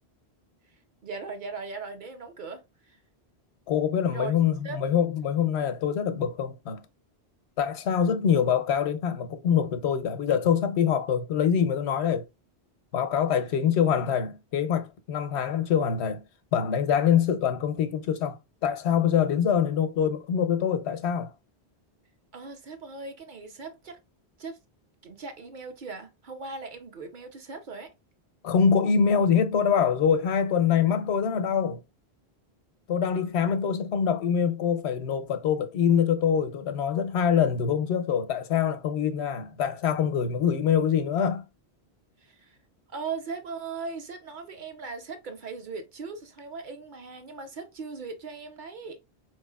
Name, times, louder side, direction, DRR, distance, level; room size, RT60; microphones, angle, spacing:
voice 1, 0.7-3.0 4.1-4.3 4.6-4.9 22.3-24.0 24.4-24.6 25.0-27.9 42.2-42.6 42.9-49.0, right 4 dB, 55° right, 0.7 m, -39 dB
voice 2, 3.7-6.8 7.6-12.3 12.9-16.2 16.5-18.4 18.6-21.3 28.4-31.8 32.9-41.4, left 7 dB, 90° left, 0.9 m, -24 dB
4.6 x 3.1 x 2.3 m
omnidirectional pair, 1.1 m